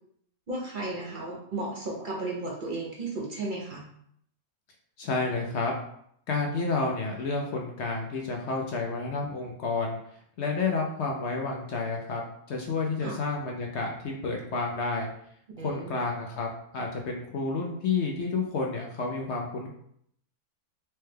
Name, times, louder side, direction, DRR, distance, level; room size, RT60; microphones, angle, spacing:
voice 1, 0.5-3.8 13.0-13.1 15.6-16.0, right 2 dB, 55° right, -2 dB, 0.5 m, -34 dB
voice 2, 5.0-5.7 6.3-10.0 10.4-12.2 12.5-15.1 15.6-19.7, left 3 dB, 65° left, 0 dB, 0.7 m, -30 dB
4.3 x 2.2 x 3.3 m, 0.69 s
omnidirectional pair, 1.6 m